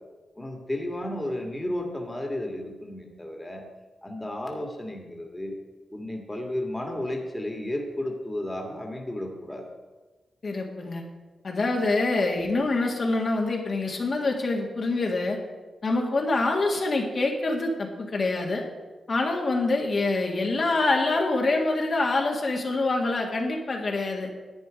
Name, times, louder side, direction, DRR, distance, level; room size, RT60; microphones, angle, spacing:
voice 1, 0.4-3.6 4.0-5.6 5.9-9.7, left 1 dB, 15° left, 2 dB, 1.9 m, -33 dB
voice 2, 10.4-11.0 11.4-15.4 15.8-18.7 19.1-24.3, left 2 dB, 50° left, 0 dB, 1.9 m, -25 dB
10.5 x 9.0 x 5.1 m, 1.2 s
cardioid pair, 80°, 0 cm